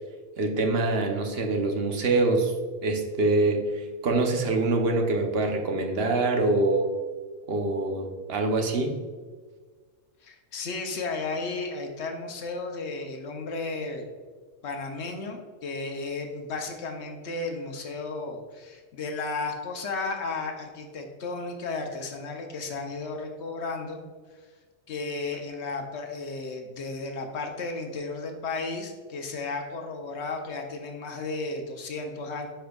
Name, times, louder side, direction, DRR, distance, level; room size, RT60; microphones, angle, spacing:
voice 1, 0.4-2.5 2.8-6.9 7.5-8.9, right 2 dB, 65° right, 4 dB, 1.0 m, -25 dB
voice 2, 10.2-14.0 14.6-24.0 24.9-32.5, left 3 dB, 75° left, 4 dB, 1.0 m, -34 dB
10.0 x 4.4 x 2.3 m, 1.5 s
omnidirectional pair, 1.2 m